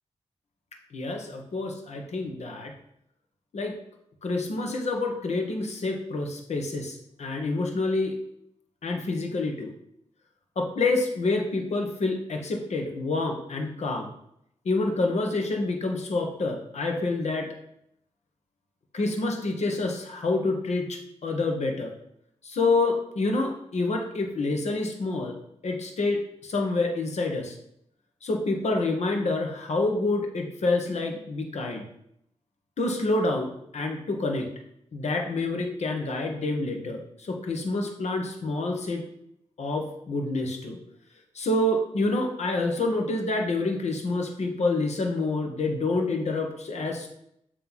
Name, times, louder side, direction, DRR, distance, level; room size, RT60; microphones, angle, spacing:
voice 1, 0.9-2.7 3.5-3.8 4.2-8.1 8.8-9.7 10.5-14.1 14.6-17.5 18.9-21.9 22.4-25.3 25.6-27.5 28.2-31.8 32.8-34.5 34.9-39.0 39.6-40.8 41.3-47.1, left 2 dB, 70° left, 3 dB, 1.4 m, -27 dB
7.9 x 3.3 x 5.7 m, 0.75 s
cardioid pair, 65°, 12 cm